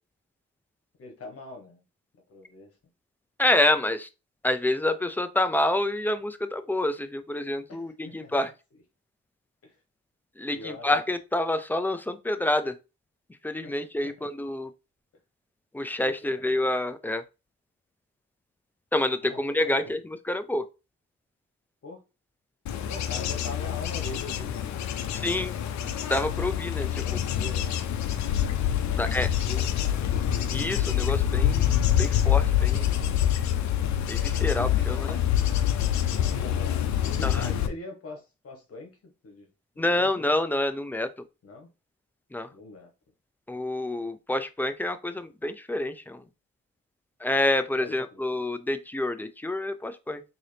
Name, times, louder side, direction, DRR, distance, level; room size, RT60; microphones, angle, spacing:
voice 1, 1.0-1.8 2.3-2.7 7.7-8.3 8.7-8.8 9.6-9.8 10.5-10.9 13.6-14.3 16.0-16.6 19.2-19.9 21.8-22.0 22.9-25.6 26.9-27.6 28.8-30.2 36.3-39.5 39.7-40.1 41.4-41.7 42.5-42.9 47.8-48.2, left 2 dB, 50° left, 1.4 m, -43 dB
voice 2, 3.4-4.1 4.4-8.5 10.4-12.7 13.4-14.7 15.7-17.2 18.9-20.6 25.1-25.5 26.1-27.0 29.0-29.3 30.5-32.9 34.1-35.2 37.2-37.5 39.8-41.1 42.3-42.5 43.5-46.2 47.2-50.2, left 1 dB, 5° left, 0.4 m, -27 dB
Bird / Insect / Wind, 22.7-37.7, left 10 dB, 70° left, 0.6 m, -26 dB
3.8 x 2.7 x 3.3 m
cardioid pair, 90°, 30 cm